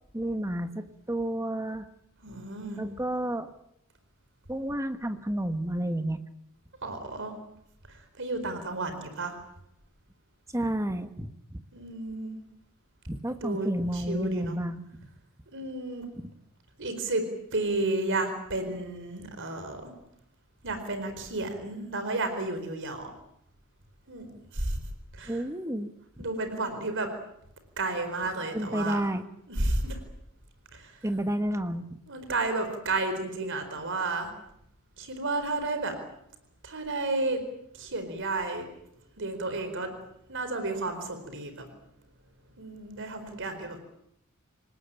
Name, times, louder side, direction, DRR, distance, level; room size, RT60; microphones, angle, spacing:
voice 1, 0.1-1.9 2.8-3.5 4.5-6.2 10.5-11.6 13.1-15.1 25.3-25.9 28.5-29.2 31.0-32.0, right 1 dB, 15° right, 8 dB, 1.4 m, -31 dB
voice 2, 2.2-2.8 6.8-7.3 7.9-9.3 11.7-12.4 13.4-14.6 15.5-16.1 16.8-17.3 17.5-19.9 20.6-23.1 24.1-24.8 25.1-25.4 26.2-27.1 27.8-29.0 29.5-30.0 30.7-31.0 32.1-34.3 35.0-36.0 36.6-37.4 37.7-38.7 39.2-39.9 40.3-41.7 42.6-43.8, right 2 dB, 60° right, 8 dB, 4.6 m, -32 dB
27.5 x 19.0 x 9.1 m, 0.78 s
head